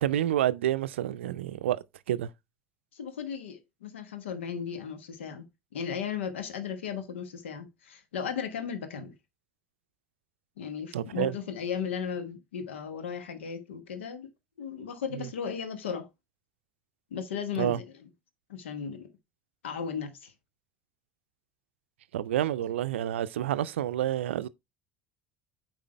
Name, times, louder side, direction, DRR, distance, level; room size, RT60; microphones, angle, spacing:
voice 1, 0.0-2.3 10.9-11.3 15.1-15.3 17.6-17.8 22.1-24.5, right 12 dB, 80° right, 0.4 m, -29 dB
voice 2, 2.9-5.5 5.7-9.1 10.6-14.3 14.6-16.1 17.1-18.1 18.5-19.1 19.6-20.3, left 7 dB, 80° left, 1.4 m, -36 dB
8.6 x 4.8 x 3.3 m
hypercardioid pair, 70°, 6 cm